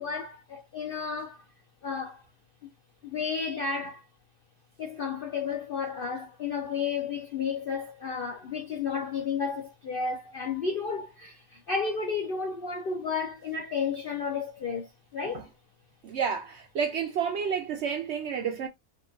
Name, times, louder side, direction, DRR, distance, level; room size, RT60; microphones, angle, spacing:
voice 1, 0.0-1.4 1.8-2.2 3.0-4.0 4.8-15.5, left 5 dB, 70° left, 0.5 m, -32 dB
voice 2, 16.0-18.7, right 7 dB, 70° right, 0.6 m, -30 dB
2.9 x 2.4 x 2.4 m
omnidirectional pair, 1.6 m